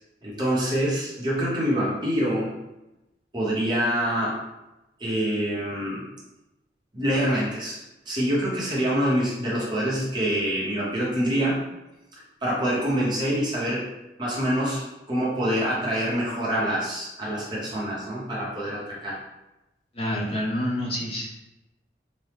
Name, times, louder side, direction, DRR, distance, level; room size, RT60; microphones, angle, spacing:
voice 1, 0.2-2.5 3.3-4.3 5.0-6.0 6.9-7.8 8.1-11.6 12.4-13.8 14.2-19.2, equal, 25° right, -6 dB, 0.9 m, -25 dB
voice 2, 19.9-21.3, equal, 30° left, -4 dB, 0.7 m, -27 dB
2.9 x 2.2 x 3.3 m, 0.96 s
head